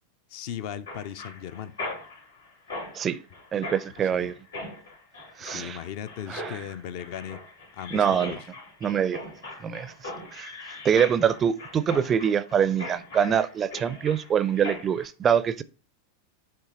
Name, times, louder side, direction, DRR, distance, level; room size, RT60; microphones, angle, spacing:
voice 1, 0.3-1.7 4.1-4.3 5.4-7.4 7.7-8.4, left 9 dB, 50° left, 0.4 m, -37 dB
Mechanisms, 0.9-15.1, left 2 dB, 75° left, 2.5 m, -40 dB
voice 2, 3.5-4.3 5.4-5.8 6.3-6.6 7.9-8.3 8.8-9.2 9.6-9.9 10.3-10.5 10.8-15.6, right 8 dB, 25° right, 0.4 m, -24 dB
10.0 x 3.4 x 2.9 m
figure-of-eight pair, 90°, 0 cm